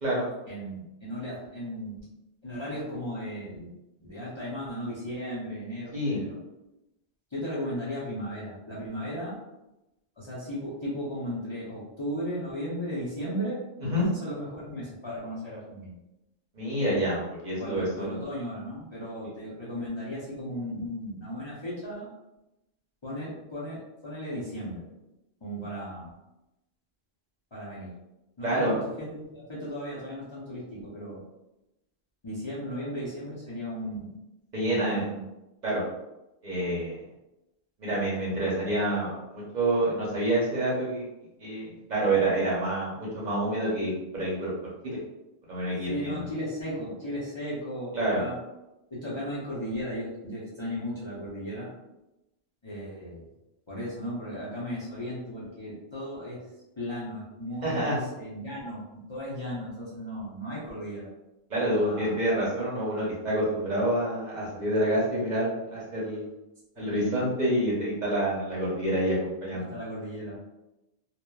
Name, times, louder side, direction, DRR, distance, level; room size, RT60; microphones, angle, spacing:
voice 1, 0.5-2.0 2.4-3.7 4.0-6.4 7.3-9.3 10.2-13.6 14.0-15.9 17.6-22.1 23.0-24.9 25.4-26.1 27.5-27.9 28.4-31.2 32.2-34.1 34.6-35.2 45.9-48.4 48.9-51.7 52.6-53.2 53.7-56.4 56.8-58.8 59.1-61.1 61.8-62.2 66.8-67.2 69.5-70.4, equal, 30° left, -9 dB, 0.6 m, -36 dB
voice 2, 16.5-18.2 28.4-28.8 34.5-35.0 35.6-35.8 36.4-37.0 37.8-41.1 41.4-44.5 44.8-45.0 45.5-46.3 47.9-48.2 57.6-58.0 61.5-66.3 66.8-69.7, right 1 dB, 50° right, -6 dB, 0.8 m, -27 dB
2.9 x 2.0 x 2.2 m, 0.94 s
omnidirectional pair, 1.0 m